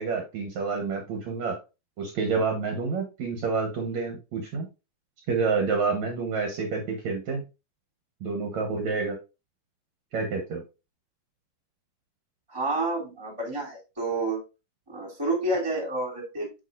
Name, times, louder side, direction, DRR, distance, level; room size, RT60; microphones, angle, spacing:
voice 1, 0.0-1.6 2.0-4.7 5.3-7.4 8.2-9.2 10.1-10.6, right 4 dB, 65° right, 2 dB, 2.3 m, -28 dB
voice 2, 12.5-14.4 14.9-16.6, right 2 dB, 10° right, -1 dB, 2.8 m, -29 dB
8.3 x 6.4 x 2.6 m, 0.28 s
omnidirectional pair, 3.8 m